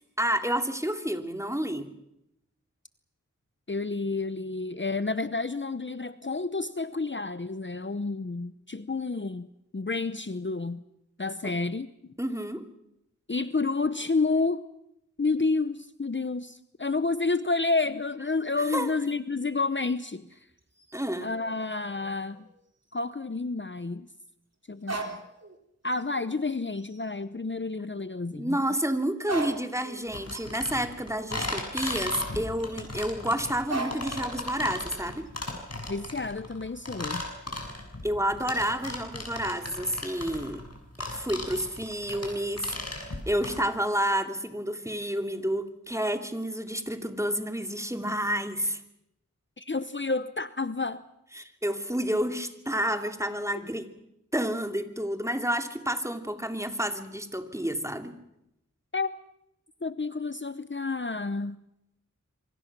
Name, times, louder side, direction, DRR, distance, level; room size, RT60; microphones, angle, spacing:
voice 1, 0.2-1.9 12.2-12.7 18.7-18.9 20.9-21.3 28.4-35.3 38.0-40.6 41.0-48.8 51.3-53.9 54.3-58.1, equal, 10° right, 6 dB, 2.6 m, -30 dB
voice 2, 3.7-9.5 9.7-10.8 11.2-11.9 13.3-14.6 15.2-20.4 21.2-22.5 22.9-24.1 24.7-25.2 25.8-28.6 35.9-37.2 49.6-51.0 53.5-53.6 58.9-59.1 59.8-61.6, left 3 dB, 40° left, 13 dB, 0.8 m, -30 dB
sound 1, 20.6-22.6 22.9-23.0 24.8-25.6 25.9-26.4 26.7-27.1 28.9-29.0 29.2-32.5 33.7-34.2 34.6-35.3, right 3 dB, 55° right, 3.7 m, -40 dB
sound 2, 30.1-43.6, left 2 dB, 55° left, 6.6 m, -36 dB
26.5 x 24.5 x 6.1 m, 0.82 s
wide cardioid pair, 45°, 31 cm